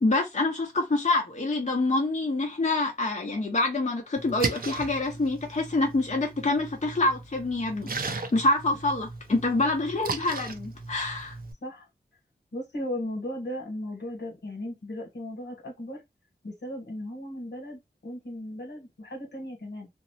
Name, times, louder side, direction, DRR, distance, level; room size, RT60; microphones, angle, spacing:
voice 1, 0.0-11.4, left 2 dB, 40° left, 0.8 m, -26 dB
Splash splatter, 4.2-11.5, right 4 dB, 55° right, 0.5 m, -37 dB
voice 2, 12.5-16.0 16.4-19.9, left 1 dB, 80° left, 1.2 m, -36 dB
2.6 x 2.0 x 2.7 m
wide cardioid pair, 80°, 18 cm